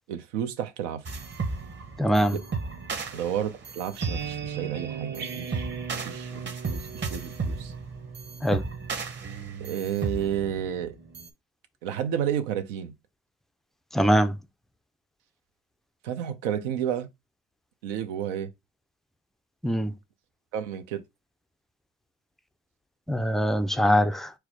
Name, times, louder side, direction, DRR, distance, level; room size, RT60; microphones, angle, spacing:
voice 1, 0.1-1.2 3.1-7.7 9.6-11.0 11.8-12.9 16.0-17.1 17.8-18.5 20.5-21.0, right 9 dB, 90° right, 0.8 m, -31 dB
sound 1, 1.1-11.3, right 5 dB, 30° right, 0.8 m, -34 dB
voice 2, 2.0-2.3 8.4-8.6 13.9-14.3 19.6-19.9 23.1-24.3, equal, ahead, 0.3 m, -22 dB
4.6 x 2.0 x 4.7 m
supercardioid pair, 90°, 36 cm